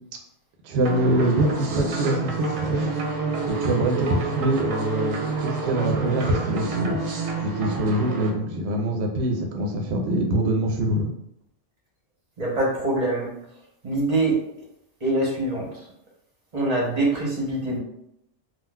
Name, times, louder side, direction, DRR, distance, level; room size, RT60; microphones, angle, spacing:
voice 1, 0.6-2.9 3.5-7.0 7.4-11.1, right 1 dB, 65° right, 2 dB, 0.8 m, -24 dB
sound 1, 0.8-8.3, right 3 dB, 90° right, 1.1 m, -28 dB
voice 2, 12.4-13.3 13.8-14.3 15.0-15.8 16.5-17.8, right 2 dB, 35° right, -4 dB, 0.7 m, -24 dB
3.7 x 2.4 x 2.2 m, 0.77 s
omnidirectional pair, 1.3 m